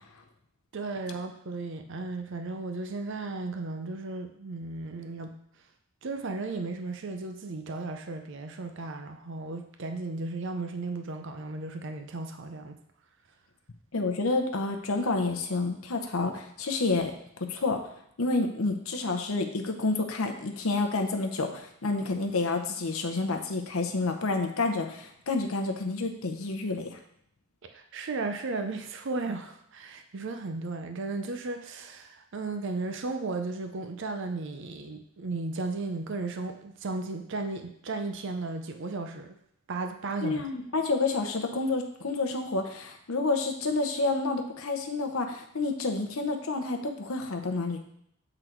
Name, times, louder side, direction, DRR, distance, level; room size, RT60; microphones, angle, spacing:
voice 1, 0.7-5.3 6.0-12.8 27.7-39.4 39.7-40.4, right 3 dB, 55° right, 6 dB, 0.5 m, -35 dB
voice 2, 13.9-17.1 17.5-17.8 18.2-27.0 40.2-47.8, left 3 dB, 70° left, 4 dB, 0.8 m, -29 dB
7.8 x 3.9 x 4.5 m, 0.70 s
head